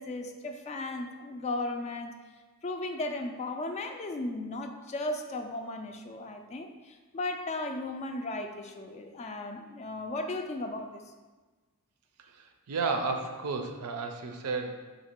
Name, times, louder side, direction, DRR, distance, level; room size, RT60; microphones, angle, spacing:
voice 1, 0.0-2.1 2.6-11.1, left 2 dB, 30° left, 5 dB, 0.3 m, -36 dB
voice 2, 12.2-14.7, right 4 dB, 80° right, 5 dB, 0.5 m, -33 dB
3.9 x 2.9 x 4.4 m, 1.3 s
head